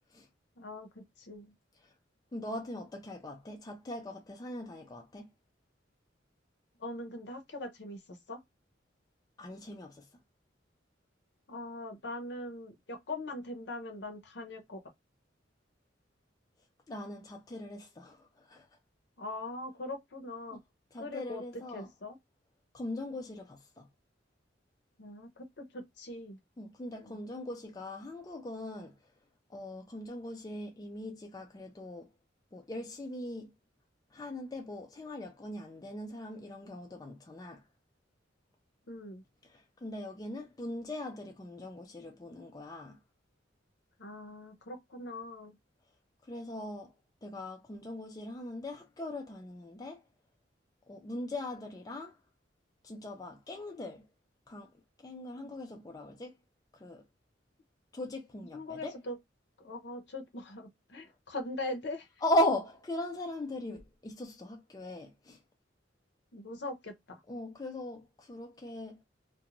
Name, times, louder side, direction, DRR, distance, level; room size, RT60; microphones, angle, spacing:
voice 1, 0.6-1.5 6.8-8.4 11.5-14.8 19.2-20.6 21.0-22.2 25.0-26.4 27.0-27.2 38.9-39.2 44.0-45.5 55.4-55.5 58.5-59.2 59.6-62.1 66.3-67.2, left 2 dB, 60° left, 0.7 m, -41 dB
voice 2, 2.3-5.3 9.4-10.1 16.9-18.7 20.5-20.6 20.9-21.9 22.7-23.9 26.6-29.0 29.5-32.1 32.5-33.5 34.1-37.6 39.5-43.0 46.2-46.9 47.2-50.0 50.9-52.2 52.8-54.1 54.5-54.7 55.0-56.3 56.7-57.0 57.9-59.0 62.2-65.4 67.3-69.0, left 1 dB, 20° left, 0.4 m, -39 dB
2.4 x 2.2 x 2.9 m
head